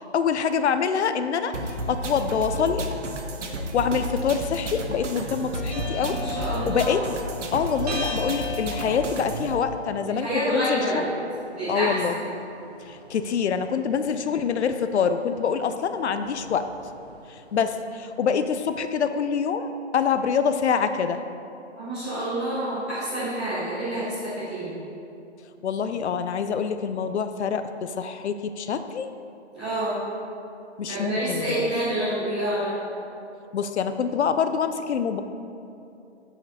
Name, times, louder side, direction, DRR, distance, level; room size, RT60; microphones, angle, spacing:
voice 1, 0.1-1.6 1.9-2.8 3.7-6.2 6.7-7.0 7.5-11.1 11.7-12.2 12.8-16.7 17.3-21.2 25.6-29.1 30.8-31.7 33.5-35.2, left 6 dB, 70° left, 10 dB, 0.5 m, -25 dB
sound 1, 1.5-9.5, equal, 90° right, 1.0 m, -32 dB
sound 2, 5.7-17.8, left 2 dB, 35° right, 0.9 m, -40 dB
voice 2, 6.0-7.0 10.1-11.1 11.5-12.3 21.8-24.8 29.5-30.0 30.9-32.7, right 1 dB, ahead, -18 dB, 0.6 m, -28 dB
7.9 x 4.9 x 4.1 m, 2.7 s
hypercardioid pair, 170°, 35 cm